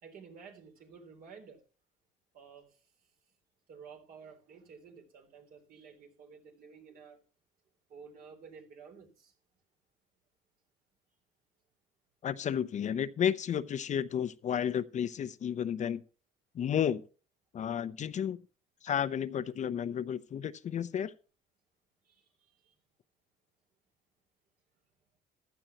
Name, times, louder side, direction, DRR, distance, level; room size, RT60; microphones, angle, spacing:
voice 1, 0.0-1.6 2.3-2.7 3.7-7.2 7.9-9.3 22.0-22.3 22.7-22.8, right 6 dB, 60° right, 3.8 m, -52 dB
voice 2, 12.2-16.0 16.5-17.0 17.5-18.4 18.8-21.1, left 9 dB, 45° left, 0.7 m, -32 dB
15.0 x 11.5 x 2.9 m
cardioid pair, 110°, 17 cm